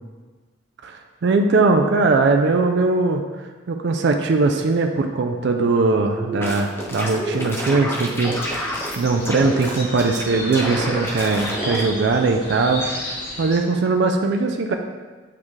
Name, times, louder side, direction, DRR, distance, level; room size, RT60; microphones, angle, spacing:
voice 1, 0.8-14.7, right 3 dB, 60° right, 4 dB, 0.4 m, -20 dB
sound 1, 6.1-9.0 9.2-10.2 10.5-11.9, equal, 10° left, 0.6 m, -28 dB
sound 2, 8.2-13.6, left 1 dB, 75° left, 1.7 m, -33 dB
8.5 x 3.2 x 3.6 m, 1.4 s
head